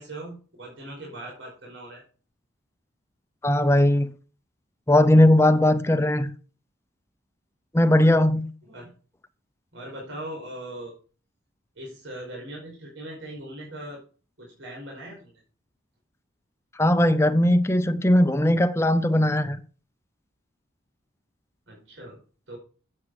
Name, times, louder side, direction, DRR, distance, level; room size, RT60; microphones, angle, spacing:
voice 1, 0.0-2.0 8.6-8.9 9.7-10.9 11.7-14.0 14.4-15.4 21.7-22.2 22.5-22.6, right 1 dB, 80° right, 5.1 m, -40 dB
voice 2, 3.4-4.1 4.9-6.3 7.7-8.5 16.8-19.6, left 1 dB, 15° left, 0.6 m, -19 dB
11.5 x 8.5 x 4.9 m
head